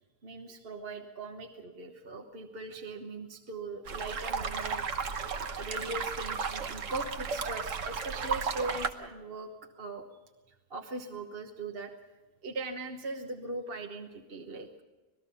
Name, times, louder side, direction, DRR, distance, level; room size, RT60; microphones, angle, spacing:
voice 1, 0.2-4.8 5.6-9.5 9.8-10.0 10.5-11.9 12.4-14.8, right 3 dB, 45° right, 3 dB, 1.4 m, -40 dB
sound 1, 3.9-8.9, right 5 dB, 60° right, 1.5 m, -34 dB
26.0 x 19.0 x 5.6 m, 1.2 s
omnidirectional pair, 1.5 m